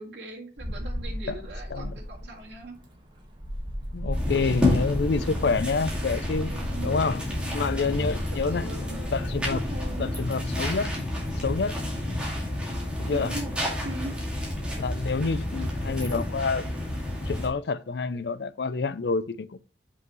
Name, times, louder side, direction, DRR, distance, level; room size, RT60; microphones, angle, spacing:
voice 1, 0.0-2.8 6.4-9.0 9.5-10.2 13.1-13.5 13.8-14.2 15.2-15.4, right 2 dB, 75° right, 2.0 m, -40 dB
sound 1, 0.6-9.9, equal, 25° right, 1.6 m, -36 dB
voice 2, 3.9-6.5 6.8-7.2 7.5-8.7 9.1-9.6 10.0-11.0 11.4-11.8 13.0-13.3 14.7-16.7 17.3-19.6, left 4 dB, 70° left, 0.5 m, -28 dB
sound 2, 4.1-17.5, left 1 dB, 5° right, 2.1 m, -30 dB
7.4 x 5.6 x 3.1 m
head